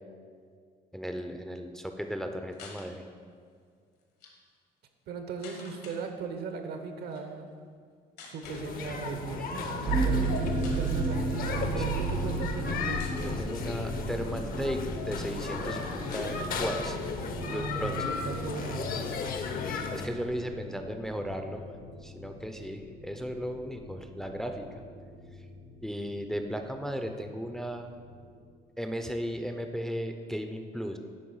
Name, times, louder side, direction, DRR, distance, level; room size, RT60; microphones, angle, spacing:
voice 1, 0.9-3.0 11.8-11.9 13.2-17.0 17.5-18.1 19.9-21.7 22.0-24.7 25.8-27.9 28.8-31.0, equal, 5° left, 5 dB, 0.4 m, -35 dB
sound 1, 2.5-2.9 4.0-4.3 5.4-6.0 7.0-7.2 8.2-8.7 9.7-9.9 10.3-10.4 10.6-11.1 11.9-12.6 13.0-13.4 14.0-15.0 15.4-15.5 15.6-15.7 16.1-16.9 17.2-17.3 17.6-18.7, left 4 dB, 75° left, 1.5 m, -50 dB
voice 2, 5.1-7.5 8.3-13.0 17.3-18.9, right 4 dB, 70° right, 6 dB, 0.8 m, -38 dB
sound 2, 8.4-20.1, left 5 dB, 60° left, 0.8 m, -35 dB
sound 3, 9.9-28.4, right 2 dB, 90° right, 1.7 m, -35 dB
9.5 x 3.4 x 5.5 m, 2.1 s
cardioid pair, 110°, 17 cm